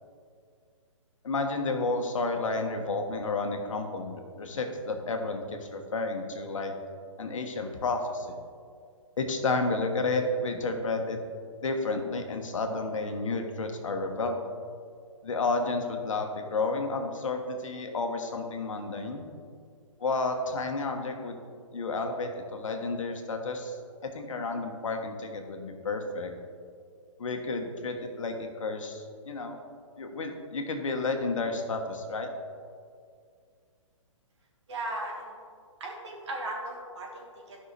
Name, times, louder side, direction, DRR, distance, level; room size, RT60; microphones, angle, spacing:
voice 1, 1.2-6.7 7.2-8.4 9.2-11.2 11.6-14.4 15.2-19.3 20.0-21.4 21.7-23.8 24.1-26.3 27.2-29.6 30.0-32.3, left 3 dB, 70° left, 4 dB, 1.1 m, -31 dB
voice 2, 34.7-35.3 35.8-37.6, right 2 dB, 55° right, -1 dB, 1.9 m, -37 dB
12.0 x 5.6 x 3.3 m, 2.2 s
hypercardioid pair, 135°, 17 cm